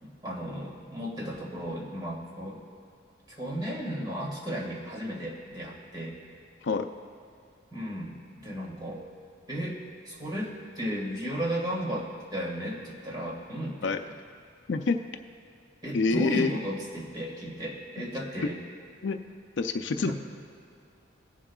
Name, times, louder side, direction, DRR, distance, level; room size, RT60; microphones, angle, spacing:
voice 1, 0.0-2.6 3.3-6.1 7.7-9.1 9.5-9.8 10.1-13.8 15.8-18.6 20.0-20.1, equal, 20° right, -3 dB, 1.9 m, -34 dB
voice 2, 14.7-15.0 15.9-16.5 19.0-19.2 19.6-20.1, left 4 dB, 65° left, 7 dB, 0.5 m, -26 dB
21.5 x 7.4 x 2.4 m, 2.5 s
head